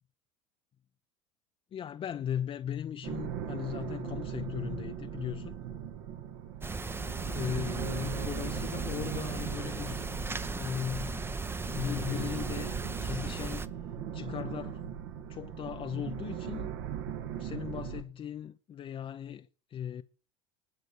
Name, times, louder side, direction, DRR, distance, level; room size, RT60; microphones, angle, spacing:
voice 1, 1.7-5.6 7.3-10.1 10.4-11.4 11.7-13.8 14.1-14.8 15.3-16.7 17.4-20.0, left 9 dB, 35° left, 0.7 m, -38 dB
sound 1, 3.0-18.0, right 9 dB, 65° right, 1.7 m, -39 dB
sound 2, 6.6-13.7, right 3 dB, 15° right, 0.8 m, -36 dB
19.5 x 6.6 x 8.1 m
hypercardioid pair, 75°, 16 cm